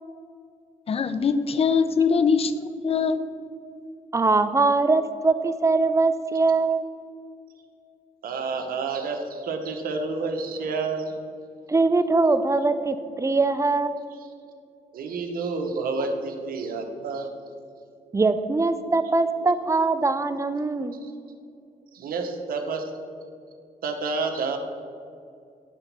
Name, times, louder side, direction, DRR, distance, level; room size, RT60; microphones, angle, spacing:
voice 1, 0.9-2.5 2.8-3.2, left 5 dB, 40° left, 11 dB, 0.5 m, -22 dB
voice 2, 4.1-6.8 11.7-13.9 18.1-21.0, right 3 dB, 20° right, 11 dB, 0.5 m, -22 dB
voice 3, 8.2-11.1 14.9-17.3 21.0-21.1 21.9-22.8 23.8-24.6, right 4 dB, 75° right, 4 dB, 1.0 m, -29 dB
9.8 x 4.0 x 6.0 m, 2.4 s
cardioid pair, 80°, 15 cm